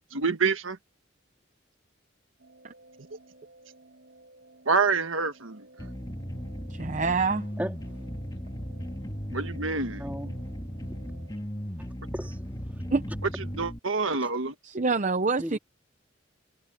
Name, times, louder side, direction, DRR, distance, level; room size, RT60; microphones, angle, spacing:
voice 1, 0.1-0.8 4.6-5.9 9.3-10.3 13.5-14.5, right 4 dB, 90° right, 1.6 m, -27 dB
sound 1, 2.4-11.4, right 2 dB, 65° right, 6.8 m, -55 dB
sound 2, 5.8-13.8, equal, 20° left, 2.0 m, -36 dB
voice 2, 6.7-7.5 12.9-13.0 14.6-15.6, right 4 dB, 40° right, 0.7 m, -26 dB
voice 3, 7.6-8.0 10.0-10.3 11.8-12.6 14.2-14.3 15.4-15.6, equal, 10° right, 3.3 m, -36 dB
head